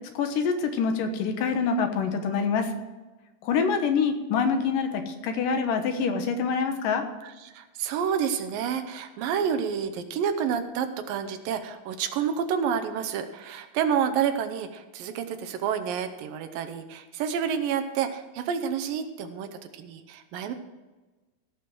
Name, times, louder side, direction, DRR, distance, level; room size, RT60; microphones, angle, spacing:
voice 1, 0.1-2.7 3.4-7.0, left 5 dB, 75° left, 6 dB, 2.8 m, -26 dB
voice 2, 7.2-19.5 19.7-20.5, right 7 dB, 85° right, 7 dB, 2.6 m, -29 dB
16.5 x 6.2 x 6.2 m, 1.2 s
omnidirectional pair, 4.0 m